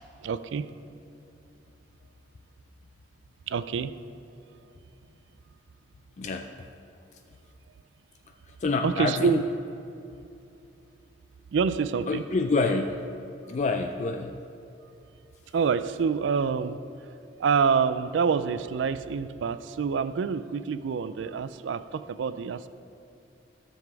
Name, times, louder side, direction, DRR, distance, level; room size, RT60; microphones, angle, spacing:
voice 1, 0.2-0.7 3.5-4.0 8.8-9.5 11.5-12.2 15.5-17.1 17.4-22.7, right 6 dB, 90° right, 14 dB, 0.4 m, -27 dB
voice 2, 6.2-6.7 8.5-9.4 12.1-13.0 13.5-14.4, left 3 dB, 40° left, 5 dB, 0.3 m, -27 dB
13.0 x 7.0 x 4.7 m, 2.7 s
head